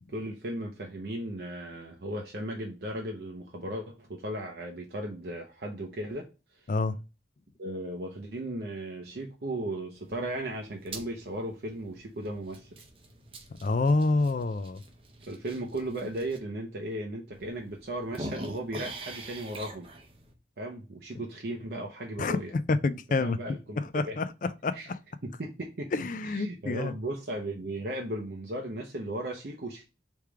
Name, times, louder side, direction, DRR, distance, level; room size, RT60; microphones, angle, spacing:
voice 1, 0.1-6.3 6.5-6.6 7.6-12.7 15.2-19.9 20.6-22.5 23.2-24.2 24.7-24.9 25.2-25.9 26.2-29.8, right 1 dB, 65° right, 0.7 m, -36 dB
sound 1, 9.9-16.4 16.9-17.0 17.3-20.3, right 2 dB, 30° right, 0.7 m, -45 dB
voice 2, 13.6-14.8 21.2-21.3 22.2-22.4 22.7-23.4 23.8-25.0 25.9-26.9, left 3 dB, 45° left, 0.4 m, -28 dB
3.5 x 3.1 x 4.7 m
head